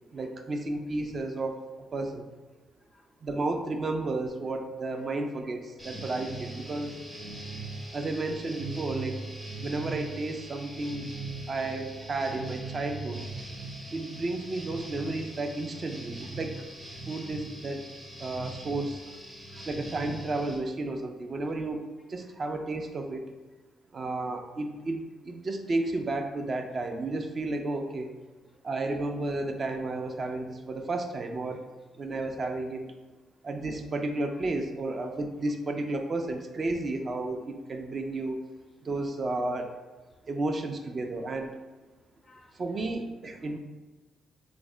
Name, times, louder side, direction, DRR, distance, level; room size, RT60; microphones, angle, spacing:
voice 1, 0.1-1.6 1.9-2.3 3.2-7.0 7.9-9.2 9.6-11.1 11.5-13.2 13.9-16.6 17.1-17.9 18.2-19.0 19.5-21.8 22.1-23.2 23.9-28.1 28.6-31.6 32.0-32.8 33.4-38.4 38.8-39.7 40.3-41.5 42.5-43.6, right 2 dB, 40° right, 4 dB, 0.4 m, -32 dB
voice 2, 2.5-3.3 5.0-5.1 11.3-11.6 19.1-19.2 19.5-19.7 22.2-22.3 28.5-28.6 34.3-34.4 40.1-40.3 42.1-42.8 43.4-43.5, left 2 dB, 30° left, 5 dB, 0.3 m, -63 dB
sound 1, 5.8-20.6, right 2 dB, 20° right, 0.9 m, -40 dB
3.1 x 2.1 x 3.7 m, 1.2 s
cardioid pair, 90°, 0 cm